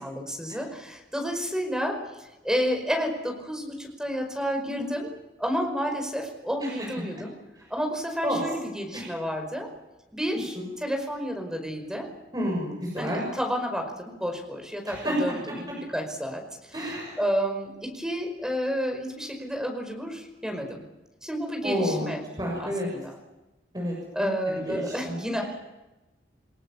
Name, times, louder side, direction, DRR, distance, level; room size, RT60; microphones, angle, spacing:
voice 1, 0.0-7.3 7.7-9.7 10.1-12.1 13.0-16.4 16.8-16.9 17.2-20.8 21.2-22.2 22.6-23.1 24.1-25.4, equal, 5° right, 3 dB, 5.2 m, -30 dB
voice 2, 12.3-13.3 14.9-15.2 15.5-15.6 16.7-17.2 21.6-22.1 22.4-22.9 23.7-25.2, equal, 25° right, -2 dB, 7.0 m, -30 dB
28.5 x 18.5 x 7.2 m, 1.0 s
head